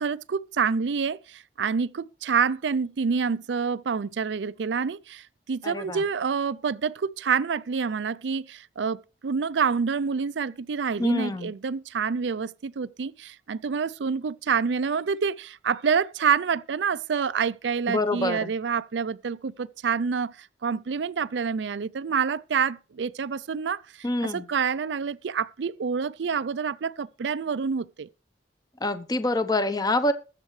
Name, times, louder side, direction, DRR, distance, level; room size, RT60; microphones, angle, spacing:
voice 1, 0.0-28.1, right 6 dB, 85° right, 0.5 m, -27 dB
voice 2, 5.6-6.0 11.0-11.5 17.9-18.5 24.0-24.5 28.8-30.1, left 2 dB, 20° left, 0.8 m, -26 dB
21.5 x 7.4 x 3.2 m
head